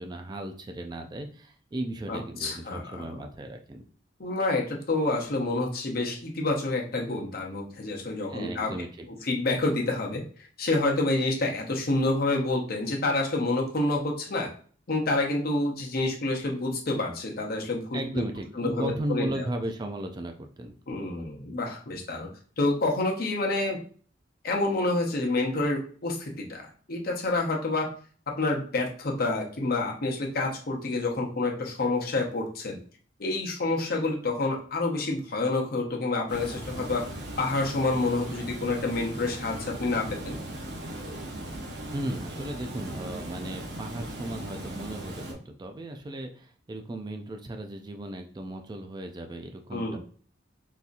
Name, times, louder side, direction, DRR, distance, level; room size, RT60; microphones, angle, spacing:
voice 1, 0.0-3.8 8.3-9.1 17.9-20.8 41.9-50.0, right 1 dB, 25° right, 4 dB, 0.3 m, -36 dB
voice 2, 2.1-3.2 4.2-8.7 9.2-10.2 10.6-14.5 14.9-18.2 18.6-19.3 20.9-22.3 22.6-23.8 24.4-27.9 28.4-32.8 33.2-37.1 37.4-40.4 49.7-50.0, left 2 dB, 55° left, 1 dB, 0.8 m, -28 dB
Water, 36.3-45.3, right 1 dB, 65° right, 0.8 m, -38 dB
3.9 x 2.8 x 2.5 m, 0.44 s
head